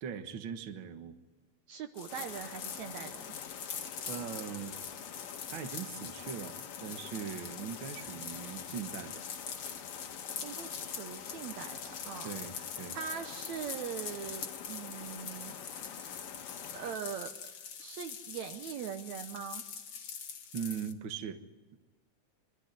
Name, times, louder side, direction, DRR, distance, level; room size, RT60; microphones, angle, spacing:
voice 1, 0.0-1.2 4.1-4.8 5.5-9.2 12.2-13.0 20.5-21.4, right 7 dB, 50° right, 7 dB, 1.6 m, -40 dB
voice 2, 1.7-3.4 10.4-12.3 12.6-12.7 12.9-16.2 16.7-17.3 17.8-19.6, right 8 dB, 70° right, 7 dB, 2.0 m, -42 dB
sound 1, 2.0-20.9, left 7 dB, 50° left, 2.2 m, -44 dB
sound 2, 2.1-17.0, left 9 dB, 85° left, 2.8 m, -47 dB
24.0 x 13.0 x 9.7 m, 1.2 s
omnidirectional pair, 3.8 m